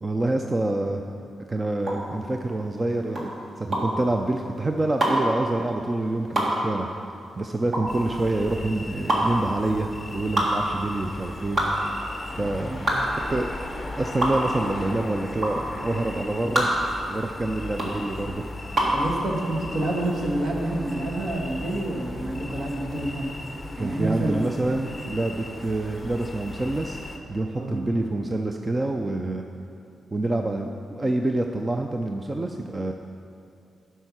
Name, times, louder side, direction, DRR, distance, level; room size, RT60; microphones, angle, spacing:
voice 1, 0.0-1.0 1.5-3.3 3.6-6.9 7.4-11.6 12.0-12.9 13.3-13.6 14.0-16.7 17.1-18.5 23.8-27.0 27.3-29.5 30.1-32.9, right 2 dB, 20° right, 4 dB, 0.4 m, -27 dB
sound 1, 1.8-19.0, right 1 dB, 40° right, 1.8 m, -27 dB
sound 2, 7.9-27.2, left 2 dB, 10° left, 0.8 m, -37 dB
voice 2, 18.9-23.3 23.8-24.4 27.6-27.8, right 1 dB, 55° right, -1 dB, 1.7 m, -28 dB
12.5 x 5.6 x 6.0 m, 2.5 s
wide cardioid pair, 150°, 0 cm